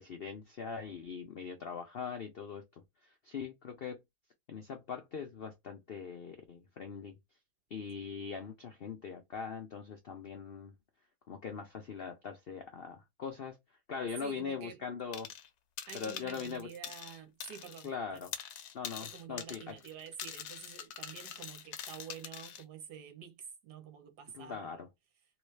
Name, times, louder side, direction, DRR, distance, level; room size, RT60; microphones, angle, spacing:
voice 1, 0.0-4.0 4.5-7.1 7.7-10.7 11.3-13.6 13.9-15.3 15.9-16.7 17.8-18.3 18.7-19.7 24.3-24.9, left 6 dB, 90° left, 0.5 m, -41 dB
voice 2, 14.2-14.8 15.9-18.3 19.0-24.9, right 8 dB, 70° right, 1.5 m, -49 dB
sound 1, 15.1-15.5 15.8-17.9 18.2-22.6, left 9 dB, 70° left, 1.1 m, -44 dB
3.1 x 3.1 x 3.2 m
omnidirectional pair, 1.9 m